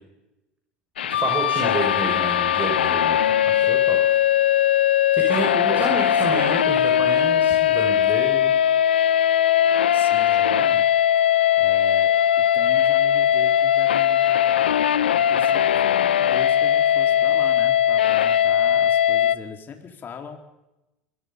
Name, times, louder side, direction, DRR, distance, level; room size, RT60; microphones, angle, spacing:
sound 1, 1.0-19.4, left 10 dB, 90° left, 0.7 m, -19 dB
voice 1, 1.2-4.1 5.1-8.5, right 3 dB, 30° right, 2 dB, 6.2 m, -29 dB
voice 2, 9.9-10.8 11.2-12.1 12.4-14.8 15.1-20.4, left 6 dB, 40° left, 4 dB, 4.3 m, -40 dB
25.5 x 22.0 x 5.5 m, 0.95 s
hypercardioid pair, 75°, 5 cm